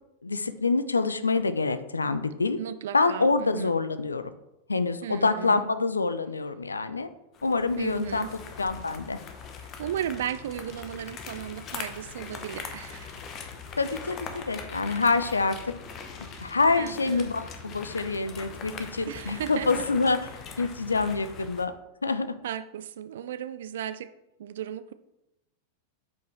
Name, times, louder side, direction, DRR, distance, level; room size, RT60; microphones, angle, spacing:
voice 1, 0.2-2.6 2.9-4.3 4.7-7.1 7.4-8.3 8.6-9.2 13.8-15.6 16.2-20.3 20.6-21.7 22.0-22.3, left 3 dB, 75° left, 12 dB, 0.4 m, -26 dB
voice 2, 2.6-3.7 5.0-5.7 7.8-8.3 9.6-13.2 16.8-17.3 19.0-19.9 22.4-24.1 24.4-24.9, right 10 dB, 60° right, 14 dB, 0.3 m, -35 dB
sound 1, 7.3-21.7, left 5 dB, 35° left, 0.8 m, -41 dB
8.2 x 4.5 x 3.2 m, 0.91 s
figure-of-eight pair, 90°, 0 cm